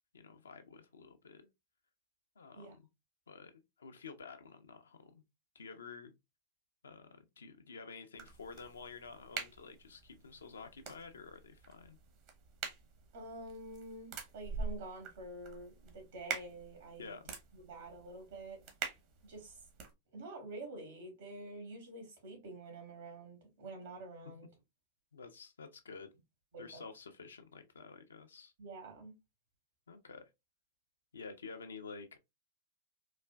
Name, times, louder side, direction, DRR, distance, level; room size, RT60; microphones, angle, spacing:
voice 1, 0.1-1.5 2.4-2.9 3.3-3.5 3.8-5.2 5.5-6.1 6.8-12.0 17.0-17.3 25.1-26.1 26.6-28.5 29.9-30.2 31.1-32.2, left 4 dB, 85° left, 0.6 m, -50 dB
sound 1, 8.2-19.9, right 5 dB, 50° right, 1.0 m, -46 dB
voice 2, 13.1-17.2 17.5-18.6 19.2-19.6 20.1-24.5 26.5-26.8 28.6-29.1, right 2 dB, 70° right, 2.0 m, -48 dB
4.0 x 2.5 x 2.2 m
hypercardioid pair, 100°, 0 cm